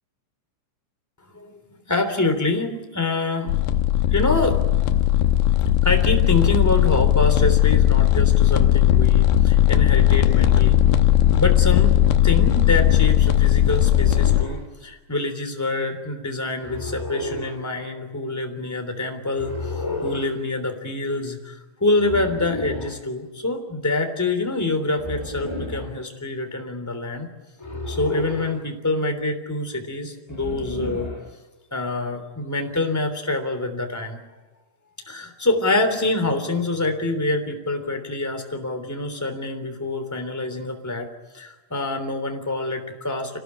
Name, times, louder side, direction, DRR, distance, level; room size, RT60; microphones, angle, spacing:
voice 1, 1.9-3.5 4.1-4.6 5.8-10.8 11.4-19.7 20.0-27.3 27.9-31.1 31.7-34.2 35.1-41.1 41.3-43.4, left 2 dB, 5° left, 5 dB, 1.9 m, -26 dB
sound 1, 3.5-14.5, left 13 dB, 75° left, 2.6 m, -17 dB
sound 2, 13.7-14.6 16.6-17.6 19.3-20.3 22.0-23.0 24.9-25.9 27.6-28.6 30.3-31.3, left 2 dB, 35° left, 0.4 m, -31 dB
28.0 x 18.0 x 9.8 m, 1.2 s
omnidirectional pair, 5.9 m